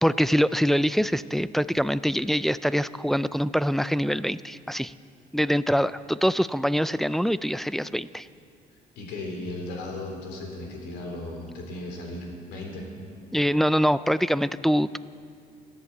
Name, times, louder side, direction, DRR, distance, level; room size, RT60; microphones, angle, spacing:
voice 1, 0.0-4.9 5.3-8.3 13.3-15.0, equal, ahead, 15 dB, 0.3 m, -24 dB
voice 2, 9.0-12.9, left 2 dB, 85° left, 1 dB, 3.6 m, -36 dB
15.0 x 11.0 x 8.1 m, 2.6 s
cardioid pair, 110°, 17 cm